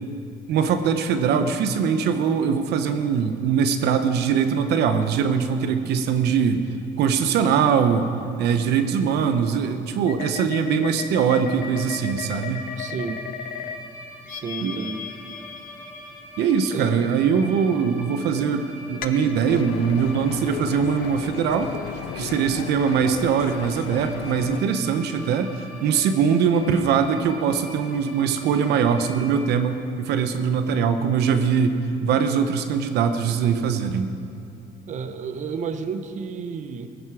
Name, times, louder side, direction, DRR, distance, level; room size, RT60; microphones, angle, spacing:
voice 1, 0.5-6.7 7.0-8.1 8.4-12.7 14.6-14.8 16.4-21.7 22.1-34.1, right 6 dB, 75° right, 8 dB, 0.9 m, -22 dB
sound 1, 10.1-13.8 14.3-16.5 19.0-20.1, left 8 dB, 55° left, 0.8 m, -36 dB
sound 2, 11.5-29.4, equal, 10° right, 2.5 m, -43 dB
voice 2, 12.8-13.2 14.3-15.0 16.7-17.0 34.9-36.9, right 5 dB, 45° right, 9 dB, 0.9 m, -31 dB
sound 3, 19.5-24.6, left 13 dB, 80° left, 0.5 m, -35 dB
16.0 x 14.5 x 4.8 m, 2.5 s
cardioid pair, 110°, 17 cm